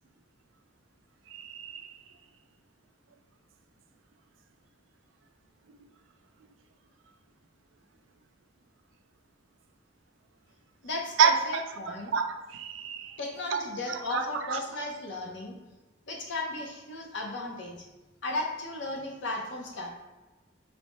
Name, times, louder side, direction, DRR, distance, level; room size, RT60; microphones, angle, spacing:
voice 1, 1.3-2.0 11.2-11.6 12.1-13.2 13.5-14.6, right 6 dB, 85° right, 7 dB, 0.4 m, -28 dB
voice 2, 10.8-12.1 13.2-15.6 16.1-17.9 18.2-19.9, left 2 dB, 70° left, 0 dB, 0.7 m, -35 dB
4.3 x 2.1 x 3.1 m, 1.1 s
head